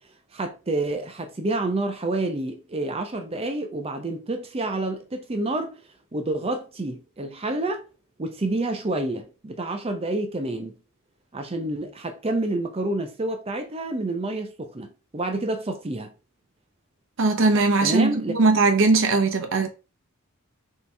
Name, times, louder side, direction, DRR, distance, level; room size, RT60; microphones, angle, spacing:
voice 1, 0.3-5.8 6.1-7.8 8.2-10.8 11.3-16.1 17.8-18.3, right 2 dB, 30° right, 0.6 m, -28 dB
voice 2, 17.2-19.7, right 3 dB, 65° right, 0.8 m, -20 dB
4.1 x 3.0 x 3.4 m
head